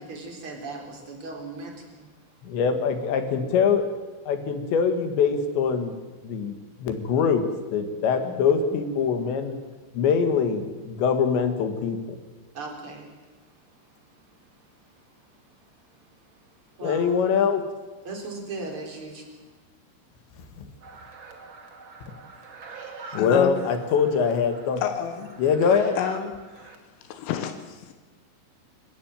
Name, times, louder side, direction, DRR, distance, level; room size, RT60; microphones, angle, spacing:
voice 1, 0.0-2.8 3.3-3.5 8.2-8.3 8.6-8.8 12.5-17.1 18.0-19.6, right 3 dB, 30° right, 2 dB, 4.3 m, -40 dB
voice 2, 2.4-3.9 4.3-6.0 6.2-7.5 7.7-9.6 9.9-12.2 16.8-17.7 20.3-20.7 22.1-22.2 23.1-24.8 25.4-26.0, left 6 dB, 70° left, 8 dB, 3.8 m, -23 dB
sound 1, 20.8-26.8, right 4 dB, 45° right, 1.7 m, -44 dB
voice 3, 23.2-23.6 24.8-25.4 26.0-26.3 26.7-26.8 27.0-27.9, left 9 dB, 85° left, 7 dB, 4.0 m, -30 dB
27.5 x 14.0 x 9.1 m, 1.2 s
omnidirectional pair, 5.6 m